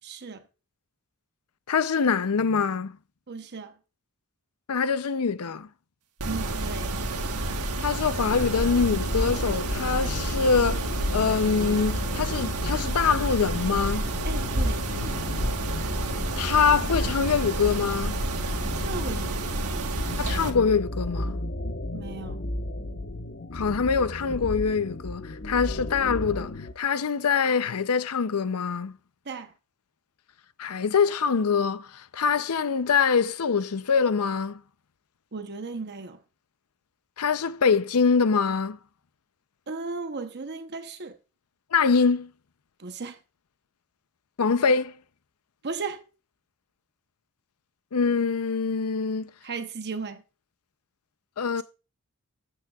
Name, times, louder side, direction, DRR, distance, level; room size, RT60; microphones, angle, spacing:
voice 1, 0.0-0.4 3.3-3.8 6.2-7.0 14.2-14.9 18.7-19.9 21.9-22.4 29.3-29.5 35.3-36.2 39.7-41.2 42.8-43.2 45.6-46.0 49.4-50.2 51.6-51.7, right 4 dB, 50° right, 0.9 m, -36 dB
voice 2, 1.7-2.9 4.7-5.7 7.8-14.1 16.4-18.2 20.2-21.4 23.5-28.9 30.6-34.6 37.2-38.8 41.7-42.3 44.4-44.9 47.9-49.3 51.4-51.6, left 5 dB, 80° left, 0.6 m, -24 dB
Mechanisms, 6.2-20.5, right 2 dB, 85° right, 1.4 m, -30 dB
sound 1, 8.3-26.7, left 1 dB, 55° left, 1.2 m, -34 dB
12.5 x 8.5 x 2.4 m
head